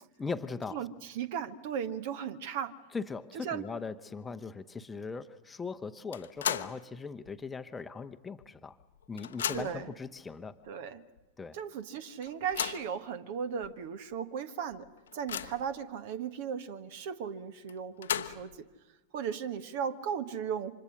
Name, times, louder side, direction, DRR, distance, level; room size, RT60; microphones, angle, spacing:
voice 1, 0.2-0.8 2.9-8.8 9.1-10.6 11.4-11.6, left 4 dB, 15° left, 9 dB, 0.9 m, -39 dB
voice 2, 0.7-2.7 3.4-3.7 9.5-9.9 10.7-11.0 11.5-14.9 15.1-18.5 19.1-20.7, right 7 dB, 50° right, 12 dB, 1.3 m, -36 dB
sound 1, 6.1-6.8 7.2-7.3 8.4-8.5 8.8-9.9 10.7-10.8 11.2-11.3 12.2-12.9 13.6-13.7 14.1-14.2 14.7-15.7 17.7-18.6, left 9 dB, 65° left, 0.9 m, -36 dB
29.0 x 25.5 x 6.4 m, 1.1 s
figure-of-eight pair, 90°, 0 cm